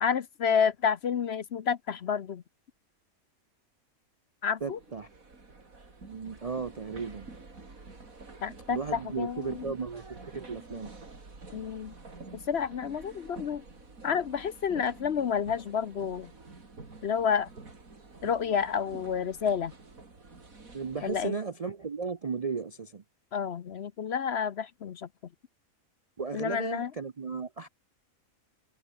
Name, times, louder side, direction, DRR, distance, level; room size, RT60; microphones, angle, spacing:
voice 1, 0.0-2.4 4.4-4.8 8.4-9.7 11.5-11.9 12.3-13.6 14.0-16.3 17.0-17.5 18.2-19.7 21.0-21.4 23.3-25.1 26.3-26.9, left 7 dB, 55° left, 0.9 m, -30 dB
voice 2, 4.6-5.1 6.1-7.3 8.7-10.9 20.7-23.0 26.2-27.7, right 5 dB, 40° right, 0.5 m, -35 dB
sound 1, 4.6-21.3, right 3 dB, 70° right, 3.9 m, -49 dB
omnidirectional pair, 1.5 m